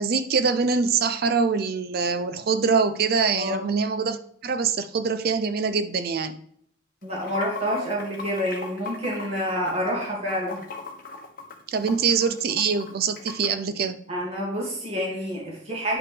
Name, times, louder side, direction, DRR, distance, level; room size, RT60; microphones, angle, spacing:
voice 1, 0.0-6.4 11.7-14.0, right 5 dB, 50° right, 12 dB, 0.4 m, -24 dB
Water / Sink (filling or washing), 7.0-13.5, left 4 dB, 50° left, 1.2 m, -39 dB
voice 2, 7.0-10.6 14.1-16.0, equal, 35° right, -3 dB, 2.5 m, -28 dB
9.5 x 5.6 x 3.4 m, 0.67 s
head